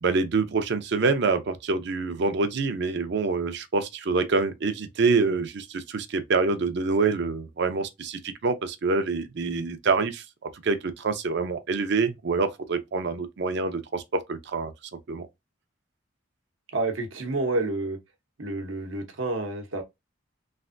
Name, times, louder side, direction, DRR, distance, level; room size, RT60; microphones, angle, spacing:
voice 1, 0.0-10.2 10.6-14.7 15.1-15.3, right 4 dB, 60° right, 0.5 m, -26 dB
voice 2, 16.7-18.0 18.4-19.8, right 2 dB, 85° right, 0.9 m, -29 dB
3.2 x 2.5 x 2.5 m
head